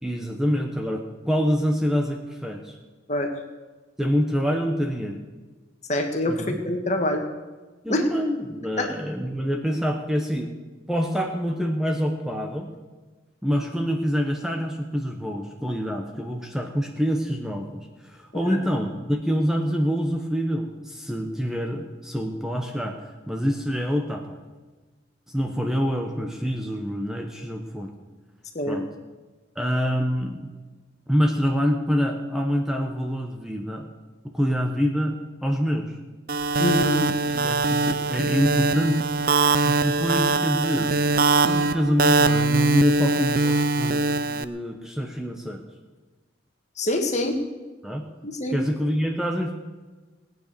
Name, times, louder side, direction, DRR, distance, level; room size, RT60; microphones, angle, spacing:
voice 1, 0.0-2.8 4.0-5.2 6.3-6.6 7.8-10.5 10.9-12.7 13.4-24.4 25.3-27.9 28.7-28.9 29.5-30.5 31.1-33.9 34.3-36.0 37.0-39.1 39.6-41.0 41.4-45.6 47.8-48.0 48.5-49.5, equal, 5° right, 2 dB, 1.1 m, -26 dB
voice 2, 5.9-7.2 7.9-8.0 8.8-8.9 18.4-18.6 28.5-28.8 36.6-37.0 46.8-47.4 48.2-48.6, left 1 dB, 35° left, 4 dB, 1.7 m, -25 dB
sound 1, 36.3-44.4, right 3 dB, 45° right, 0.5 m, -22 dB
19.0 x 9.3 x 6.9 m, 1.3 s
head